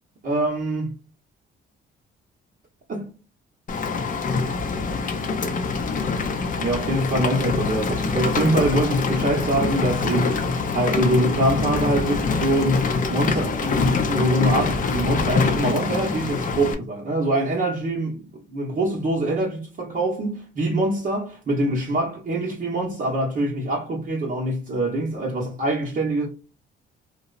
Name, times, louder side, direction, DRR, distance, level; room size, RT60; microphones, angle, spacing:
voice 1, 0.2-1.0 2.9-3.1 6.6-10.4 10.7-26.3, right 1 dB, 45° right, 0.8 m, -24 dB
Rain, 3.7-16.7, left 4 dB, 40° left, 0.5 m, -25 dB
2.8 x 2.0 x 2.3 m
cardioid pair, 90°, 20 cm